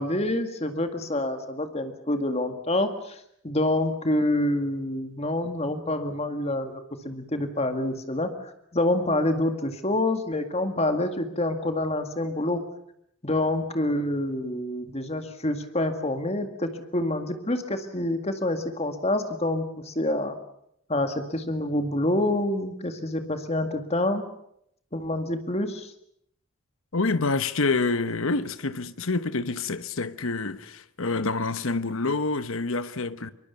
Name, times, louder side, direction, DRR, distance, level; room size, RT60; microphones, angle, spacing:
voice 1, 0.0-3.2 3.4-12.7 13.2-20.4 20.9-24.3 24.9-25.9, left 1 dB, 30° left, 2.0 m, -27 dB
voice 2, 26.9-33.3, left 3 dB, 70° left, 1.1 m, -27 dB
23.5 x 23.0 x 7.0 m
head